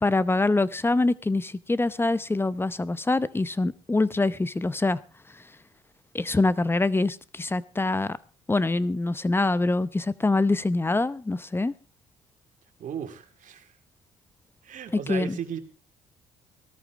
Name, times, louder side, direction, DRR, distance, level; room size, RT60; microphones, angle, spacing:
voice 1, 0.0-5.0 5.3-5.4 6.1-8.2 8.5-11.7 15.1-15.4, left 2 dB, 15° left, 17 dB, 0.7 m, -24 dB
voice 2, 12.8-13.7 14.6-15.6, right 8 dB, 60° right, 6 dB, 2.4 m, -36 dB
18.0 x 13.0 x 3.6 m, 0.34 s
supercardioid pair, 75°, 15 cm